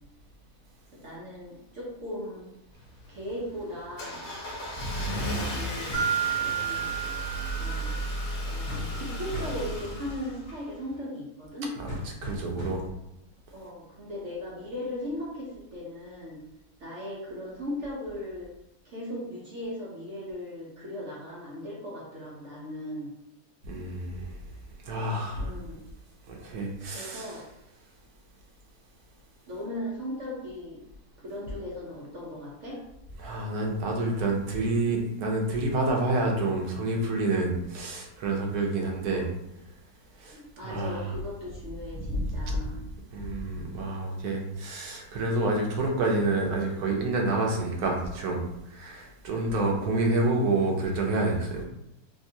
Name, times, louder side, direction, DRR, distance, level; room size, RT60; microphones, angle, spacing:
voice 1, 1.0-2.4 3.1-4.3 4.9-6.0 6.3-6.9 7.6-7.9 8.5-11.7 13.5-16.4 16.8-18.5 18.8-23.1 25.4-25.7 26.9-27.4 29.5-30.8 31.2-32.8 39.1-39.2 40.3-42.8, left 1 dB, 55° right, -6 dB, 1.1 m, -38 dB
Car / Engine starting, 2.7-10.9, equal, 70° left, 1.1 m, -34 dB
sound 1, 5.9-6.3 8.7-9.0 9.3-9.7 11.9-13.0, left 1 dB, 55° left, 1.2 m, -38 dB
Mallet percussion, 5.9-8.5, right 8 dB, ahead, 0.8 m, -31 dB
voice 2, 12.2-12.8 23.6-24.4 24.8-25.5 26.3-27.4 33.2-39.3 40.2-41.1 42.0-42.6 43.1-51.6, right 2 dB, 80° right, 0 dB, 1.2 m, -28 dB
3.4 x 2.6 x 2.7 m, 0.83 s
omnidirectional pair, 1.6 m